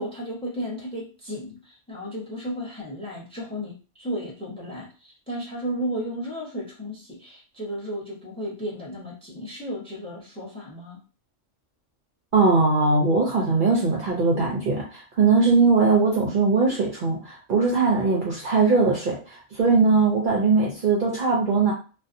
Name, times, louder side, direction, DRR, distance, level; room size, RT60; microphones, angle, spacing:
voice 1, 0.0-11.0, equal, 5° left, -3 dB, 0.7 m, -34 dB
voice 2, 12.3-21.7, right 4 dB, 55° right, -3 dB, 0.6 m, -20 dB
2.6 x 2.2 x 2.5 m, 0.35 s
omnidirectional pair, 1.3 m